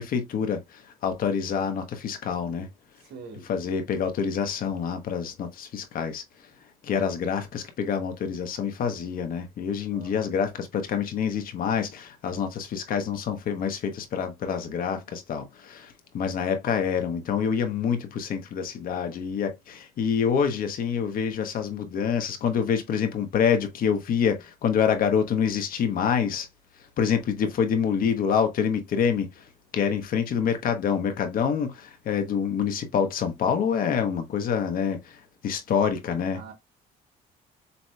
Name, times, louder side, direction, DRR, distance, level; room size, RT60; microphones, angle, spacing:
voice 1, 0.0-2.7 3.5-6.2 6.8-26.5 27.0-29.4 29.7-35.2 35.4-36.4, left 7 dB, 55° left, 1.1 m, -26 dB
voice 2, 3.0-3.5 9.9-10.4 36.3-36.5, right 5 dB, 70° right, 1.9 m, -44 dB
6.9 x 3.0 x 2.3 m
cardioid pair, 110°, 17 cm